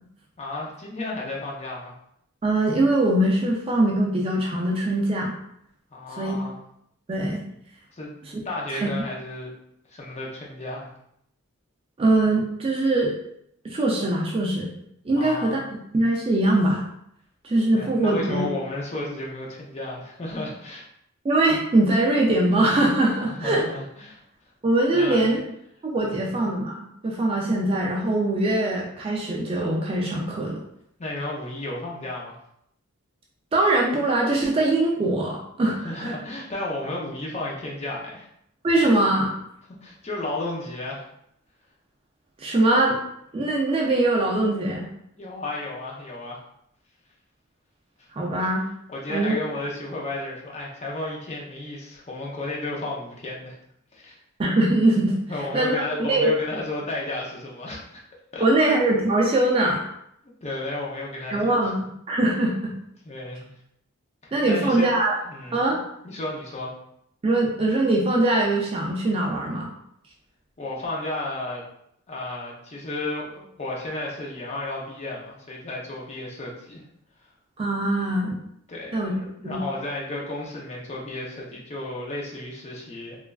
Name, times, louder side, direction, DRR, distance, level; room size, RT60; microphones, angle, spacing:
voice 1, 0.4-1.9 5.9-6.5 8.0-8.2 8.4-9.5 9.9-10.9 15.2-15.6 17.7-20.8 23.3-24.2 24.9-25.3 26.0-26.2 31.0-32.3 35.8-38.3 39.8-41.0 45.2-46.4 48.9-53.6 53.9-54.2 55.3-58.0 58.3-58.7 60.4-61.5 63.0-63.5 64.2-64.9 65.3-65.6 66.0-66.7 70.6-71.6 72.1-76.8 78.7-83.2, left 2 dB, 30° left, -3 dB, 0.5 m, -33 dB
voice 2, 2.4-5.3 6.1-6.4 7.1-7.4 8.7-8.9 12.0-13.1 13.6-14.7 15.0-15.6 15.9-16.8 17.4-18.5 21.2-23.6 24.6-25.4 25.8-30.6 33.5-36.1 38.6-39.3 42.4-43.0 43.3-44.9 48.1-48.6 49.1-49.4 54.4-55.2 55.5-55.8 56.1-56.4 58.4-59.8 61.3-62.7 64.3-65.1 65.5-65.8 67.2-69.7 77.6-78.4 78.9-79.2 79.4-79.6, right 2 dB, 25° right, -1 dB, 0.3 m, -22 dB
3.0 x 2.4 x 2.3 m, 0.74 s
head